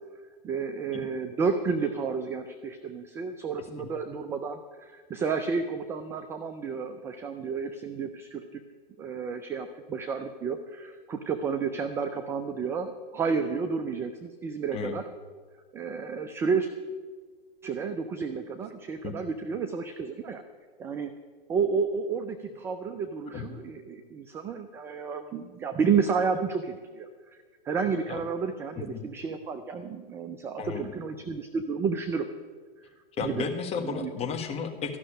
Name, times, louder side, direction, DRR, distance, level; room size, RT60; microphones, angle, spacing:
voice 1, 0.4-8.6 9.0-15.0 15.7-16.7 17.6-20.4 20.8-21.1 21.5-27.1 27.6-32.3 33.2-33.4 33.8-34.1, right 5 dB, 10° right, 8 dB, 0.3 m, -31 dB
voice 2, 33.2-35.0, left 5 dB, 20° left, 4 dB, 1.5 m, -33 dB
13.5 x 6.3 x 10.0 m, 1.5 s
hypercardioid pair, 125°, 29 cm